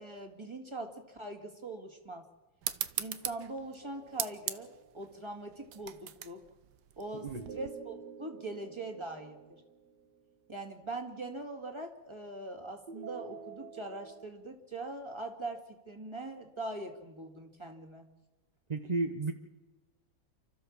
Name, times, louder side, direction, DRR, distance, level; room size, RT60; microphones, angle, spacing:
voice 1, 0.0-2.3 3.0-4.7 4.9-6.4 7.0-9.6 10.5-18.1, right 2 dB, 15° right, 4 dB, 2.1 m, -42 dB
sound 1, 2.6-7.7, right 11 dB, 75° right, 1.5 m, -40 dB
Magic Stars Retro Sparkle, 3.8-5.4 7.4-10.5 12.9-14.3, right 6 dB, 60° right, 1.9 m, -49 dB
voice 2, 18.7-19.3, right 3 dB, 35° right, 5 dB, 0.7 m, -33 dB
29.5 x 13.0 x 7.4 m, 1.2 s
omnidirectional pair, 2.1 m